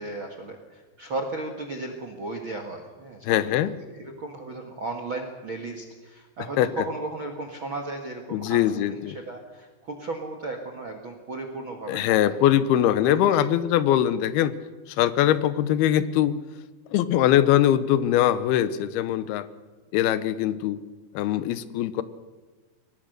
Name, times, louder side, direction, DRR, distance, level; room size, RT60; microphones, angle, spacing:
voice 1, 0.0-3.3 3.9-12.5 13.1-13.5, right 2 dB, 60° right, 5 dB, 1.3 m, -35 dB
voice 2, 3.2-3.7 6.6-6.8 8.3-9.2 11.9-14.5 14.9-16.4 16.9-19.5 19.9-20.8 21.1-22.0, left 11 dB, 75° left, 14 dB, 2.6 m, -22 dB
23.0 x 19.0 x 6.7 m, 1.3 s
omnidirectional pair, 5.1 m